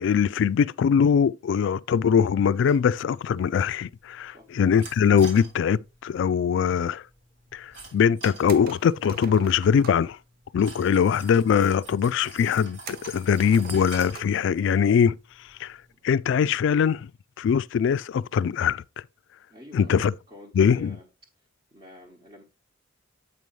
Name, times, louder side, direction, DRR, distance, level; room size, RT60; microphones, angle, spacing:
voice 1, 0.0-7.0 7.5-10.2 10.5-15.2 15.6-15.8 16.0-17.1 17.4-18.8 19.7-20.1 20.6-21.0, left 7 dB, 65° left, 0.3 m, -22 dB
sound 1, 2.6-15.9, right 3 dB, 75° right, 2.6 m, -48 dB
sound 2, 8.5-10.1 12.8-14.5 14.8-14.9 16.5-16.8, right 7 dB, 50° right, 0.4 m, -44 dB
voice 2, 19.5-21.1 21.4-22.4, left 2 dB, 30° right, 1.1 m, -48 dB
8.2 x 5.3 x 3.1 m
head